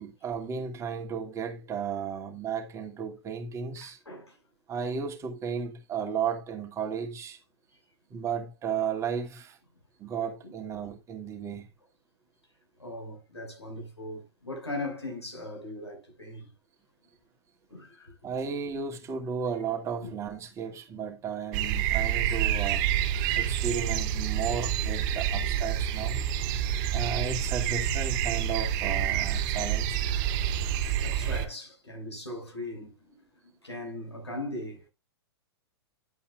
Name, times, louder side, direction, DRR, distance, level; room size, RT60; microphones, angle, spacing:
voice 1, 0.0-4.0 4.7-7.4 8.1-9.6 10.0-11.7 18.2-22.9 23.3-26.2 26.9-30.1, right 6 dB, 20° right, 2.3 m, -34 dB
voice 2, 3.8-4.4 10.4-10.5 12.8-16.5 17.7-18.1 23.5-23.6 24.4-24.5 31.0-33.2 33.6-34.9, left 1 dB, 85° left, 6.0 m, -39 dB
sound 1, 21.5-31.5, right 10 dB, 40° right, 3.2 m, -28 dB
11.0 x 8.2 x 2.5 m
figure-of-eight pair, 105°, 14 cm